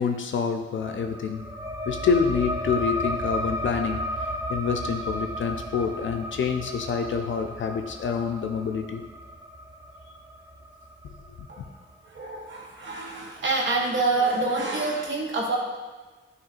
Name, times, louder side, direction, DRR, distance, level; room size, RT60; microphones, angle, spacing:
voice 1, 0.0-1.4 1.9-4.1 4.5-9.0 11.0-11.1 11.4-11.7, left 6 dB, 70° left, 6 dB, 0.4 m, -27 dB
sound 1, 0.8-11.9, equal, 15° right, 0.5 m, -34 dB
voice 2, 12.1-15.6, right 3 dB, 65° right, -1 dB, 0.7 m, -26 dB
7.5 x 2.9 x 2.4 m, 1.3 s
cardioid pair, 55°, 21 cm